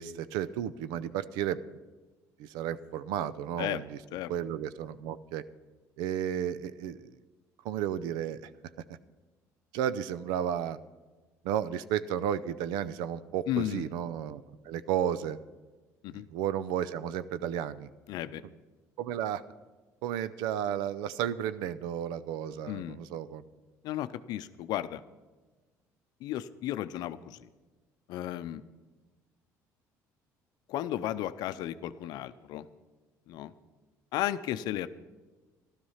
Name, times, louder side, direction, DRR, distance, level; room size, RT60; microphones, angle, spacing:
voice 1, 0.0-1.6 2.4-4.0 4.3-5.4 6.0-7.2 7.6-8.5 9.7-10.8 11.4-15.4 16.1-17.9 19.0-19.4 20.0-23.5, right 10 dB, 85° right, 15 dB, 0.5 m, -33 dB
voice 2, 13.5-13.9 16.0-16.3 18.1-18.4 22.7-23.0 23.8-25.0 26.2-27.5 28.1-28.6 30.7-32.7 33.3-33.5 34.1-34.9, left 13 dB, 70° left, 13 dB, 0.6 m, -34 dB
12.5 x 12.5 x 5.6 m, 1.3 s
supercardioid pair, 85°, 7 cm